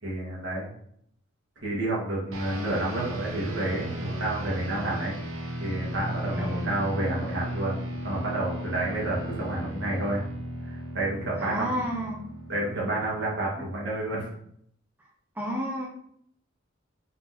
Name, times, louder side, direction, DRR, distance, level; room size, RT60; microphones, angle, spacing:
voice 1, 0.0-0.7 1.6-5.1 5.6-10.2 10.6-11.8 12.5-14.3, right 2 dB, 60° right, -5 dB, 1.7 m, -30 dB
sound 1, 2.3-14.0, right 1 dB, 80° right, 0.8 m, -36 dB
voice 2, 6.3-6.9 11.4-12.2 15.4-15.9, equal, 10° right, -2 dB, 0.6 m, -31 dB
4.2 x 4.0 x 2.8 m, 0.67 s
head